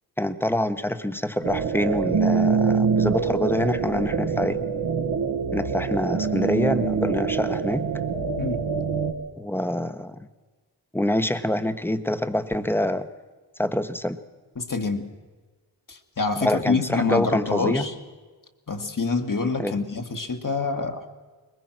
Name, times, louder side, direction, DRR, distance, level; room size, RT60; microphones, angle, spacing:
voice 1, 0.2-4.6 5.5-7.9 9.4-10.3 10.9-13.1 13.6-14.2 16.4-17.9 19.6-19.8, left 1 dB, 5° left, 10 dB, 1.1 m, -25 dB
sound 1, 1.4-9.1, right 5 dB, 80° right, 1.7 m, -25 dB
voice 2, 14.6-15.1 15.9-17.9 18.7-21.1, left 4 dB, 50° left, 5 dB, 2.1 m, -26 dB
22.0 x 20.0 x 6.0 m, 1.4 s
cardioid pair, 45°, 41 cm